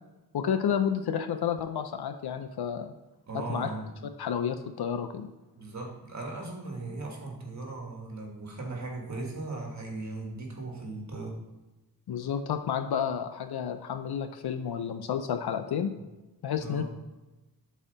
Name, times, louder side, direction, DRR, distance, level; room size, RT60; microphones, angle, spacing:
voice 1, 0.3-2.9 3.3-3.7 4.2-5.3 12.1-15.9 16.4-16.8, left 8 dB, 80° left, 9 dB, 0.5 m, -30 dB
voice 2, 3.3-3.9 5.5-11.4 15.9-16.0 16.6-16.8, right 2 dB, 45° right, 0 dB, 1.5 m, -38 dB
7.4 x 4.2 x 3.9 m, 1.1 s
wide cardioid pair, 135°, 38 cm